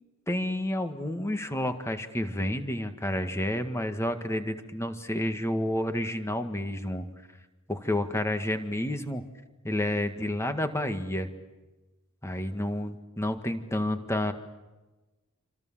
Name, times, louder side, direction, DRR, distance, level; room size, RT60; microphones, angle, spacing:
voice 1, 0.3-7.1 7.7-9.2 9.6-11.3 12.2-14.3, left 1 dB, 10° left, 7 dB, 1.8 m, -30 dB
28.0 x 26.0 x 7.5 m, 1.1 s
head